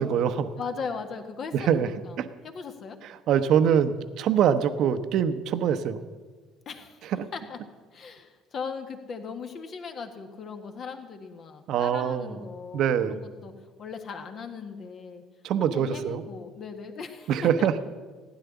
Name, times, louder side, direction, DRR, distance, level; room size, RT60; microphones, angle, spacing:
voice 1, 0.0-0.5 1.5-1.9 2.2-2.3 3.3-6.0 7.1-7.3 11.7-12.4 12.7-13.2 15.4-16.2 17.3-17.7, right 8 dB, 55° right, 11 dB, 0.8 m, -24 dB
voice 2, 0.6-3.0 6.7-7.6 7.9-13.5 13.8-15.2 15.6-17.7, left 5 dB, 45° left, 7 dB, 1.6 m, -38 dB
15.5 x 10.0 x 7.1 m, 1.4 s
hypercardioid pair, 55°, 0 cm